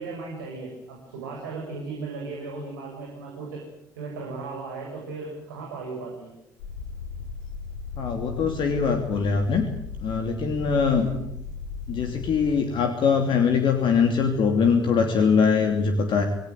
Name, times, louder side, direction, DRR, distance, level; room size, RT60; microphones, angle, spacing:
voice 1, 0.0-3.6 3.9-6.3 11.0-11.2, right 3 dB, 70° right, -1 dB, 7.4 m, -36 dB
sound 1, 6.6-12.5, left 5 dB, 70° left, 2.7 m, -37 dB
voice 2, 8.0-9.6 10.0-11.1 11.9-16.3, left 5 dB, 50° left, 6 dB, 3.0 m, -22 dB
27.5 x 19.0 x 9.5 m, 0.78 s
figure-of-eight pair, 50°, 11 cm